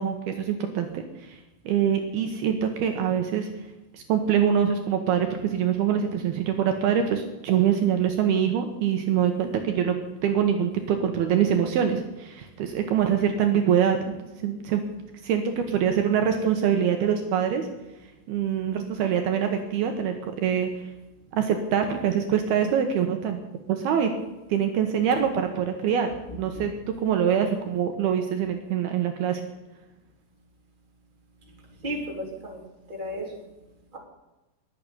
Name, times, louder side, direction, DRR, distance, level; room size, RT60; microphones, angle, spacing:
voice 1, 0.0-1.4 1.7-3.5 3.9-10.0 10.2-14.0 14.4-14.8 15.2-17.7 18.3-20.9 21.3-23.4 23.7-24.1 24.5-26.7 27.0-29.4, right 8 dB, 70° right, 5 dB, 2.9 m, -24 dB
voice 2, 31.8-33.3, equal, 10° right, 0 dB, 3.1 m, -34 dB
21.0 x 7.7 x 8.4 m, 1.0 s
omnidirectional pair, 4.9 m